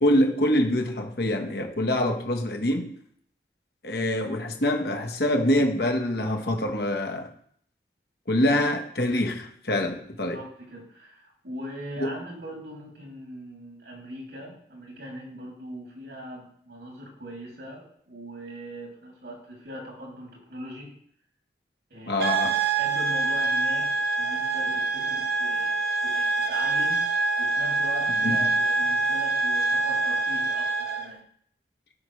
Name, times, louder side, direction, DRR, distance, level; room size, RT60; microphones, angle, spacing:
voice 1, 0.0-2.9 3.8-7.3 8.3-10.4 12.0-12.2 22.1-22.6 28.2-28.5, left 1 dB, 65° left, 3 dB, 1.4 m, -25 dB
voice 2, 10.3-20.9 21.9-22.3 22.7-25.7 26.0-31.2, equal, 80° right, -2 dB, 3.0 m, -41 dB
sound 1, 22.2-31.1, right 3 dB, 60° right, 0.9 m, -25 dB
15.5 x 5.9 x 3.3 m, 0.64 s
head